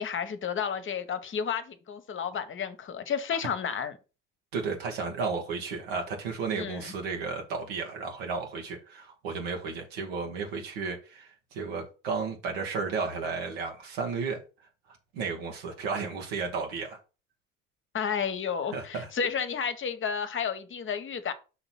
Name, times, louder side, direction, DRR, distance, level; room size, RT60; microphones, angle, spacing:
voice 1, 0.0-3.9 6.5-6.9 17.9-21.3, left 7 dB, 40° left, 1.0 m, -31 dB
voice 2, 4.5-14.4 14.9-17.0 18.7-19.1, right 4 dB, 85° right, 1.3 m, -33 dB
6.4 x 3.0 x 5.7 m
hypercardioid pair, 60°, 29 cm